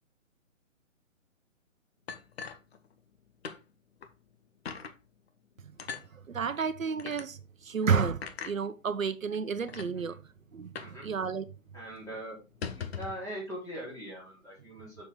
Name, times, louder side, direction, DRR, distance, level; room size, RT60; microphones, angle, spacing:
sound 1, 2.1-3.2 3.4-3.6 4.0-4.1 4.7-5.0 5.8-6.1 7.0-7.3 8.2-8.6 9.3-9.4 9.7-9.9 10.8-11.0 11.3-11.4 11.7-11.9 12.4-13.2, left 6 dB, 50° left, 1.2 m, -40 dB
voice 1, 6.1-10.2 10.5-11.5, right 6 dB, 75° right, 0.9 m, -31 dB
voice 2, 10.8-11.1 11.7-12.4 12.7-15.1, right 1 dB, 10° left, 4.1 m, -41 dB
7.0 x 6.7 x 3.8 m
figure-of-eight pair, 130°, 40 cm